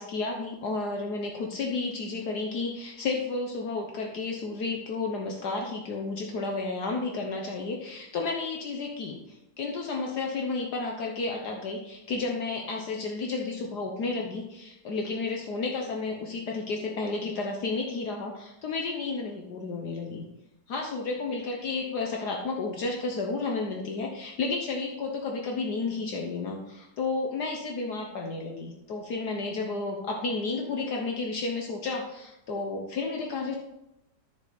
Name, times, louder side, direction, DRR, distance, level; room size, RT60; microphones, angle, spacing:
voice 1, 0.0-20.2 20.7-33.6, left 3 dB, 65° left, 1 dB, 1.6 m, -32 dB
11.0 x 6.8 x 4.1 m, 0.89 s
omnidirectional pair, 1.9 m